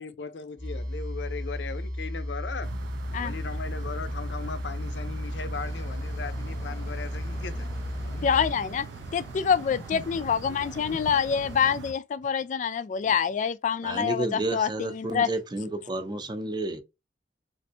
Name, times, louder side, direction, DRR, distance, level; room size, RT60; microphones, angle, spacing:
voice 1, 0.0-2.7 3.2-7.7 8.0-8.3 9.9-10.0 10.9-11.0, left 4 dB, 85° left, 0.6 m, -38 dB
sound 1, 0.6-8.5, left 1 dB, 50° right, 0.8 m, -34 dB
sound 2, 2.6-11.9, right 5 dB, 85° right, 0.4 m, -42 dB
sound 3, 5.5-11.8, left 2 dB, 20° left, 0.8 m, -49 dB
voice 2, 8.2-8.9 9.1-14.7 15.0-15.3, left 7 dB, 45° left, 0.3 m, -26 dB
voice 3, 13.8-16.8, right 2 dB, 25° right, 0.5 m, -31 dB
3.4 x 2.5 x 2.6 m
head